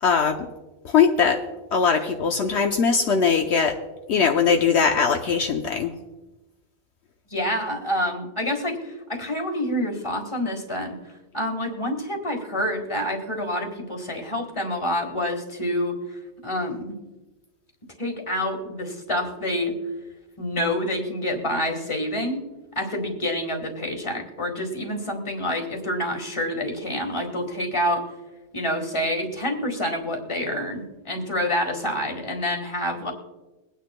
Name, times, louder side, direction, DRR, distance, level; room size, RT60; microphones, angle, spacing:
voice 1, 0.0-0.5 0.8-1.4 1.7-3.8 4.1-5.9, left 6 dB, 75° left, 3 dB, 1.0 m, -20 dB
voice 2, 7.3-11.0 11.3-16.2 16.4-17.0 18.0-19.7 20.4-22.4 22.7-28.0 28.5-33.1, left 1 dB, 25° left, 4 dB, 1.6 m, -27 dB
22.0 x 9.3 x 2.2 m, 1.1 s
omnidirectional pair, 1.2 m